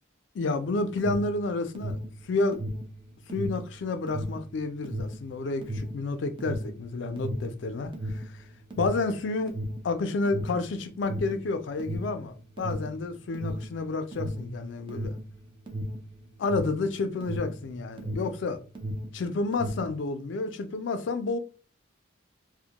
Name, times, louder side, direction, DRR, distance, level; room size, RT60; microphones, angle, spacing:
voice 1, 0.3-2.0 2.2-2.6 3.3-8.2 8.8-9.6 9.8-15.1 16.4-18.6 19.1-21.4, left 3 dB, 70° left, 0.4 m, -30 dB
Alarm, 0.6-18.4 18.7-20.0, equal, 25° right, 0.4 m, -35 dB
2.1 x 2.1 x 2.8 m
head